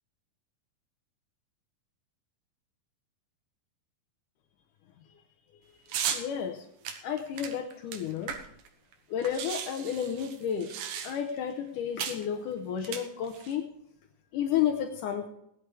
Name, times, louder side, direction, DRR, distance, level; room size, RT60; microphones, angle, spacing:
sound 1, 5.9-6.2 6.8-8.7 8.9-9.0 9.2-11.4 12.0-12.2 12.8-13.5, right 8 dB, 85° right, 2.9 m, -35 dB
voice 1, 6.1-6.7 7.0-8.4 9.1-10.7 11.0-13.7 14.3-15.3, left 9 dB, 75° left, 5 dB, 2.4 m, -31 dB
18.5 x 11.5 x 3.3 m, 0.77 s
omnidirectional pair, 3.9 m